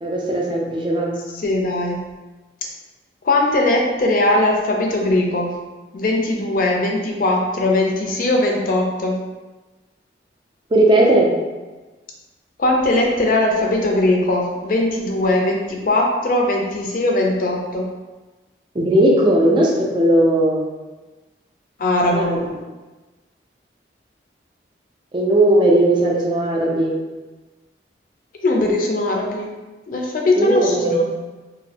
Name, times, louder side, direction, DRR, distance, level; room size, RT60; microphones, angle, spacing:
voice 1, 0.0-1.1 10.7-11.3 18.7-20.6 22.1-22.4 25.1-26.9 30.3-31.1, right 1 dB, 25° right, -2 dB, 0.4 m, -17 dB
voice 2, 1.3-2.1 3.2-5.6 5.9-9.2 12.6-17.9 21.8-22.4 28.4-29.5 29.9-31.1, left 2 dB, 50° left, 0 dB, 0.4 m, -20 dB
2.5 x 2.0 x 2.7 m, 1.2 s
head